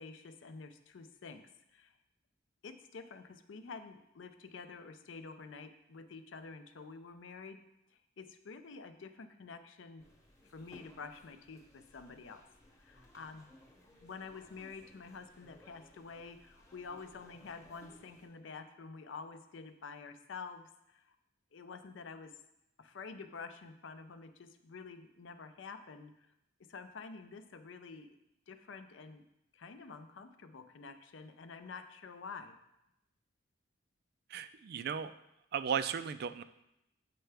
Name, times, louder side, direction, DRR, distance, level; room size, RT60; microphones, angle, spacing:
voice 1, 0.0-1.9 2.6-7.6 7.9-10.0 10.4-12.4 12.8-13.5 14.0-21.2 21.5-22.3 22.8-26.3 26.7-28.2 28.5-29.3 29.5-32.6, left 4 dB, 70° left, 9 dB, 0.5 m, -49 dB
sound 1, 10.0-18.3, left 1 dB, 15° left, 1.0 m, -61 dB
voice 2, 34.3-35.1 35.5-36.4, right 7 dB, 50° right, 12 dB, 0.3 m, -35 dB
7.6 x 5.6 x 3.4 m, 0.86 s
head